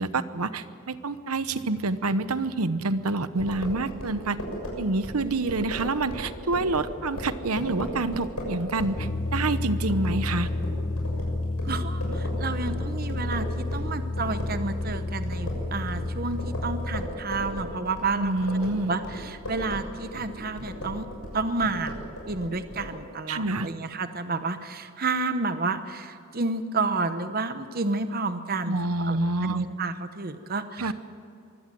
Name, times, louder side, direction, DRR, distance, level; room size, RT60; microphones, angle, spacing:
voice 1, 0.0-4.4 4.8-10.5 18.2-18.9 23.3-23.7 28.7-29.7 30.8-30.9, right 2 dB, 90° right, 13 dB, 1.0 m, -27 dB
sound 1, 3.4-13.9 14.2-22.9, left 1 dB, 90° left, 7.0 m, -36 dB
sound 2, 9.0-17.0, left 2 dB, 55° left, 1.3 m, -30 dB
voice 2, 11.6-18.3 18.7-21.1 21.3-22.0 22.3-28.8 29.0-30.9, right 3 dB, 40° right, 10 dB, 1.0 m, -30 dB
23.5 x 16.5 x 7.7 m, 2.5 s
head